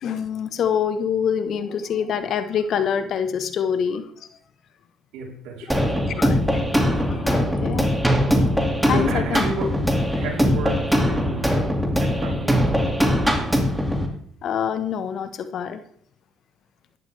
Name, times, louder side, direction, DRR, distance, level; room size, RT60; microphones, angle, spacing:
voice 1, 0.0-4.3 6.2-6.4 7.1-7.9 8.9-9.4 14.4-15.8, left 7 dB, 60° left, 11 dB, 1.1 m, -25 dB
voice 2, 5.1-6.2 8.9-9.8 10.2-13.0, right 2 dB, 75° right, -1 dB, 3.7 m, -33 dB
sound 1, 5.7-14.1, equal, 5° right, 2.3 m, -21 dB
14.5 x 11.0 x 3.4 m, 0.64 s
supercardioid pair, 70°, 0 cm